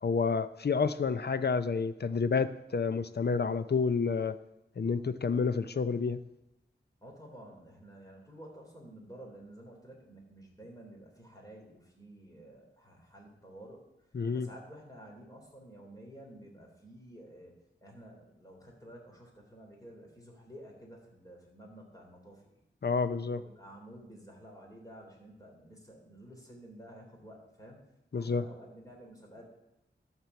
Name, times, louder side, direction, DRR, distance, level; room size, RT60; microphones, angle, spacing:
voice 1, 0.0-4.4 4.8-6.2 14.1-14.5 22.8-23.4 28.1-28.4, left 5 dB, 55° left, 13 dB, 0.6 m, -29 dB
voice 2, 7.0-22.6 23.2-27.9 28.1-29.4, right 1 dB, 20° left, -1 dB, 3.3 m, -51 dB
12.5 x 4.5 x 7.1 m, 0.88 s
wide cardioid pair, 80°, 20 cm